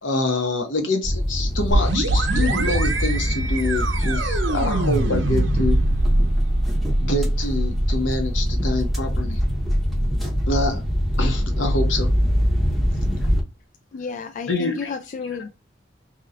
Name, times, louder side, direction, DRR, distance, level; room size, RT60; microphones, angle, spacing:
voice 1, 0.0-5.8 7.0-9.4 10.2-10.8 11.2-12.1 14.5-15.5, left 2 dB, 75° left, 1.0 m, -26 dB
sound 1, 1.0-13.4, equal, ahead, 0.8 m, -24 dB
sound 2, 1.7-11.3, right 2 dB, 70° right, 0.7 m, -24 dB
voice 2, 13.9-15.5, left 5 dB, 40° left, 0.3 m, -32 dB
3.0 x 2.8 x 3.8 m
head